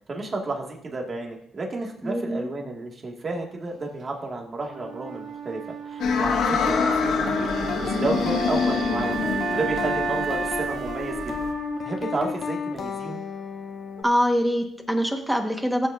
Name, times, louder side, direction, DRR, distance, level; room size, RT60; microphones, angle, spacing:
voice 1, 0.1-9.1 9.5-11.5 11.8-13.2, right 3 dB, 35° right, 0 dB, 2.2 m, -32 dB
voice 2, 2.0-2.5 6.4-6.6 14.0-15.9, equal, 5° right, 3 dB, 1.6 m, -24 dB
Wind instrument woodwind instrument, 4.7-12.7, right 7 dB, 65° right, 1.9 m, -33 dB
sound 1, 6.0-11.5, left 5 dB, 75° left, 1.3 m, -27 dB
sound 2, 6.6-14.0, left 5 dB, 55° left, 1.1 m, -31 dB
17.0 x 7.4 x 2.7 m, 0.76 s
cardioid pair, 90°, 0 cm